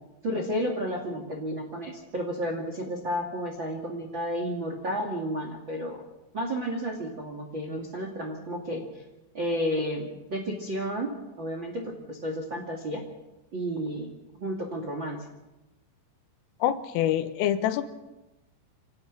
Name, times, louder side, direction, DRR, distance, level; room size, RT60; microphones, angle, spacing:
voice 1, 0.2-6.0 6.3-9.0 9.3-13.0 13.5-14.1 14.4-15.2, equal, 40° right, 3 dB, 1.7 m, -32 dB
voice 2, 16.6-17.9, left 11 dB, 85° left, 10 dB, 3.8 m, -25 dB
27.5 x 17.0 x 6.1 m, 1.0 s
omnidirectional pair, 5.8 m